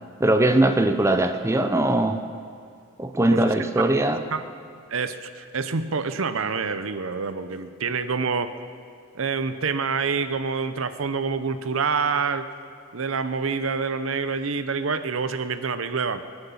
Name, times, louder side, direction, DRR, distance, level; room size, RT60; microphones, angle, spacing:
voice 1, 0.2-2.2 3.0-4.2, right 1 dB, 15° right, 7 dB, 0.6 m, -20 dB
voice 2, 4.9-8.5 9.1-12.4 12.9-16.2, right 5 dB, 80° right, 11 dB, 0.8 m, -27 dB
23.5 x 8.0 x 7.1 m, 2.3 s
head